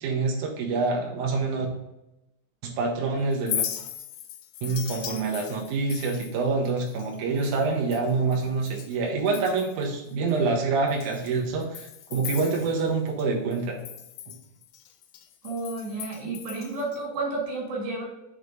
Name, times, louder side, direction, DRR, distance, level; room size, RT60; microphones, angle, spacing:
voice 1, 0.0-1.7 2.6-3.6 4.6-13.8, right 4 dB, 65° right, 0 dB, 2.2 m, -26 dB
Chink clink, 3.3-9.0 9.3-9.9 10.3-10.4 10.9-13.2 13.5-17.0, left 11 dB, 85° left, 1.8 m, -38 dB
voice 2, 15.4-18.0, right 3 dB, 80° right, -2 dB, 3.9 m, -31 dB
6.5 x 3.9 x 5.1 m, 0.92 s
omnidirectional pair, 4.3 m